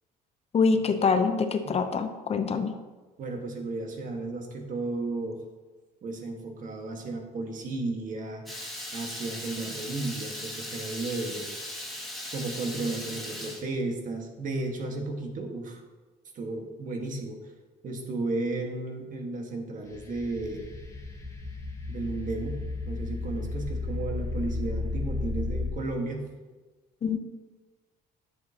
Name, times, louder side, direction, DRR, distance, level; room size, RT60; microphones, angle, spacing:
voice 1, 0.5-2.7 27.0-27.2, left 5 dB, 40° left, 8 dB, 0.7 m, -25 dB
voice 2, 3.2-5.4 6.0-11.6 12.3-15.8 16.3-17.4 17.8-20.7 21.9-26.3, right 2 dB, 50° right, 2 dB, 1.6 m, -34 dB
Water tap faucet / Liquid, 8.5-13.6, left 1 dB, ahead, 2.1 m, -38 dB
sound 1, 19.9-25.7, left 3 dB, 20° left, 1.3 m, -33 dB
10.0 x 7.7 x 2.9 m, 1.3 s
cardioid pair, 110°, 17 cm